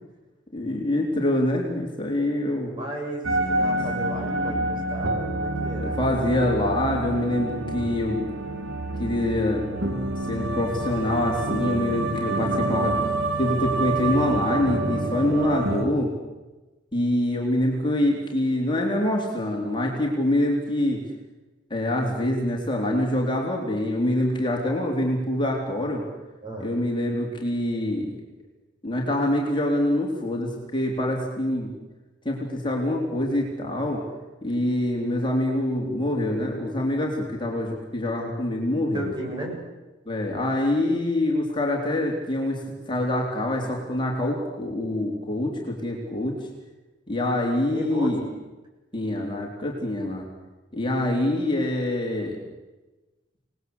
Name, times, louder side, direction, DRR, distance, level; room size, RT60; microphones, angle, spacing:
voice 1, 0.5-2.8 5.8-8.3 9.0-9.7 10.3-13.0 13.4-16.1 16.9-21.0 21.7-26.0 26.6-28.1 28.8-31.7 32.2-34.0 34.4-39.1 40.1-46.4 47.1-48.3 48.9-50.3 50.7-52.4, left 1 dB, 25° left, -1 dB, 3.9 m, -25 dB
voice 2, 2.8-6.0 26.4-26.7 38.9-39.6 47.7-48.1, right 1 dB, 25° right, 0 dB, 7.5 m, -34 dB
sound 1, 3.2-15.8, right 2 dB, 85° right, 3.1 m, -27 dB
28.0 x 20.0 x 8.1 m, 1.1 s
head